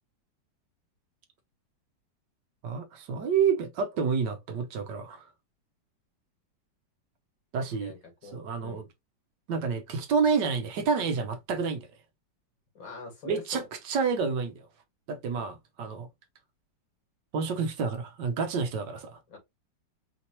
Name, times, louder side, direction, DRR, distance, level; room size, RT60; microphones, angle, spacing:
voice 1, 2.6-5.3 7.5-7.9 8.3-8.8 9.5-11.9 13.2-14.7 15.1-16.1 17.3-19.2, right 5 dB, 70° right, 1.5 m, -29 dB
voice 2, 12.7-13.6 19.3-19.4, left 4 dB, 80° left, 2.8 m, -42 dB
5.0 x 2.9 x 2.9 m
omnidirectional pair, 2.0 m